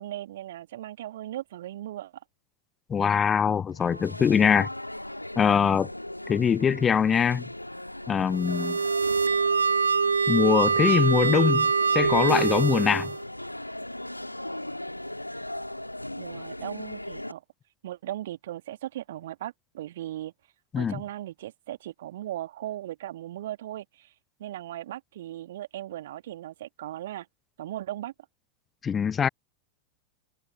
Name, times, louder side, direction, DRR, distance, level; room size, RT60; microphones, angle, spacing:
voice 1, 0.0-2.1 16.2-17.4 17.8-20.3 20.8-24.1 24.4-27.3 27.6-28.1, right 13 dB, 55° right, 1.4 m, -37 dB
voice 2, 2.9-4.7 5.4-5.9 6.3-7.5 8.1-8.8 10.3-13.1 20.7-21.0 28.8-29.3, left 7 dB, 20° left, 0.3 m, -23 dB
sound 1, 3.7-17.3, left 1 dB, 85° left, 2.7 m, -37 dB
sound 2, 8.3-13.2, right 5 dB, 75° right, 0.6 m, -24 dB
figure-of-eight pair, 90°, 0 cm